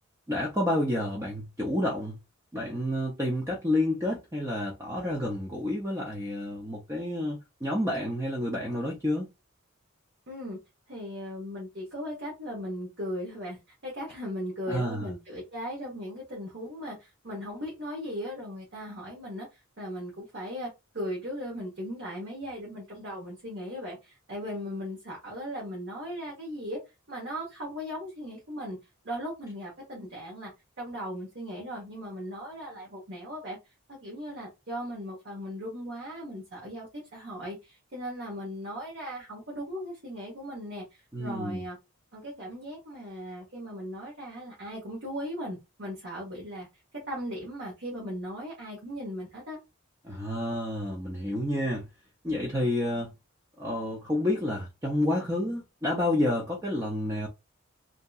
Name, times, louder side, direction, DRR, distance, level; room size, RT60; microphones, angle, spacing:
voice 1, 0.3-2.2 2.5-9.3 14.7-15.1 41.1-41.6 50.0-51.9 52.2-53.1 53.6-57.3, left 1 dB, 15° right, 0.5 m, -29 dB
voice 2, 10.3-10.6 10.9-26.8 27.1-28.8 29.0-30.5 30.8-33.6 33.9-41.8 42.1-46.7 47.1-49.6, equal, 55° right, 1.1 m, -38 dB
2.9 x 2.7 x 2.3 m
head